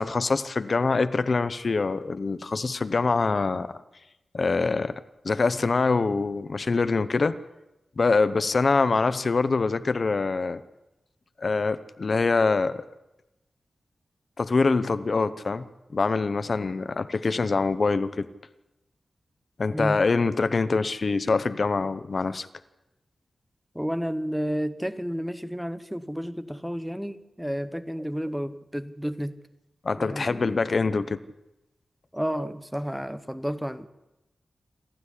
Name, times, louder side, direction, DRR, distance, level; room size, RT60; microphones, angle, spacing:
voice 1, 0.0-3.8 4.3-7.4 8.0-10.6 11.4-12.8 14.4-15.6 15.9-18.3 19.6-22.5 29.8-31.2, left 4 dB, 40° left, 13 dB, 0.8 m, -24 dB
voice 2, 23.7-29.4 30.0-30.7 32.1-33.9, equal, ahead, 12 dB, 0.8 m, -31 dB
28.0 x 12.5 x 9.8 m, 0.96 s
wide cardioid pair, 170°, 0 cm